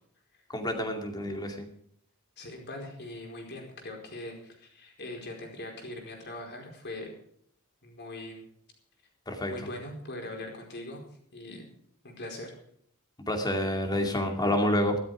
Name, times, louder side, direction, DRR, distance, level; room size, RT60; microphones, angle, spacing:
voice 1, 0.5-1.7 9.3-9.5 13.3-15.0, left 1 dB, 20° left, 4 dB, 2.4 m, -28 dB
voice 2, 2.4-7.1 7.8-8.4 9.5-11.7 12.0-12.5, left 1 dB, 50° left, 1 dB, 4.6 m, -41 dB
14.0 x 12.5 x 5.0 m, 0.66 s
head